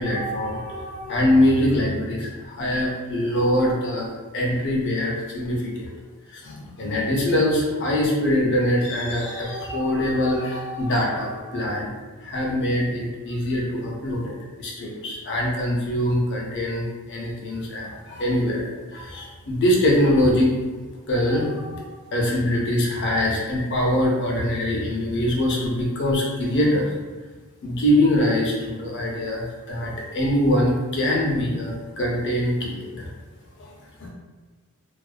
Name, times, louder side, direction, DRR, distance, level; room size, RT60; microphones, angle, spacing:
voice 1, 0.0-5.9 6.3-11.9 12.2-20.5 21.1-26.9 27.6-33.1 33.6-33.7 34.0-34.1, left 1 dB, 55° left, -2 dB, 0.6 m, -23 dB
2.4 x 2.1 x 2.4 m, 1.3 s
head